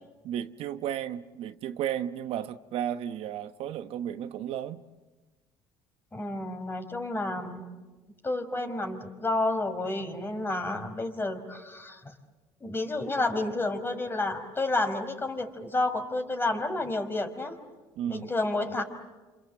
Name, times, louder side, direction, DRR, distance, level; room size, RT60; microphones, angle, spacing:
voice 1, 0.2-4.8 18.0-18.3, right 10 dB, 70° right, 1.0 m, -33 dB
voice 2, 6.1-7.7 8.2-12.1 12.6-17.5 18.1-18.8, left 2 dB, 20° left, 4.8 m, -30 dB
28.0 x 27.5 x 7.7 m
supercardioid pair, 90°, 10 cm